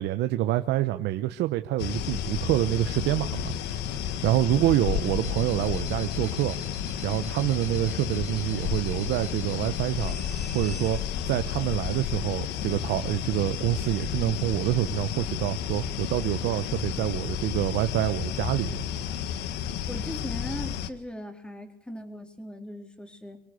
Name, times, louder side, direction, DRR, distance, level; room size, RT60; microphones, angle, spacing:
voice 1, 0.0-3.5 4.0-6.6 7.0-10.2 10.5-11.0 11.3-18.8, right 15 dB, 85° right, 9 dB, 1.0 m, -27 dB
sound 1, 1.8-20.9, left 9 dB, 85° left, 1.6 m, -32 dB
sound 2, 5.2-10.9, right 3 dB, 40° right, 3.1 m, -48 dB
voice 2, 19.9-23.4, equal, 5° left, 5 dB, 3.9 m, -39 dB
25.5 x 18.5 x 8.4 m, 0.66 s
cardioid pair, 110°, 17 cm